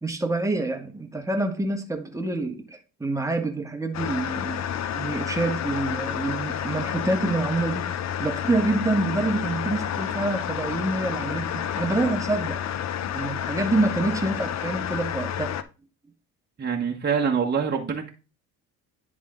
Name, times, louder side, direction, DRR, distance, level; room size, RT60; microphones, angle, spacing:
voice 1, 0.0-4.6 4.9-7.8 8.2-12.6 13.1-15.5, right 2 dB, 10° right, 5 dB, 1.3 m, -27 dB
sound 1, 3.9-15.6, left 9 dB, 45° left, 0.6 m, -30 dB
voice 2, 16.6-18.1, right 6 dB, 30° right, 0 dB, 1.3 m, -25 dB
10.0 x 3.7 x 3.7 m, 0.32 s
supercardioid pair, 90°, 37 cm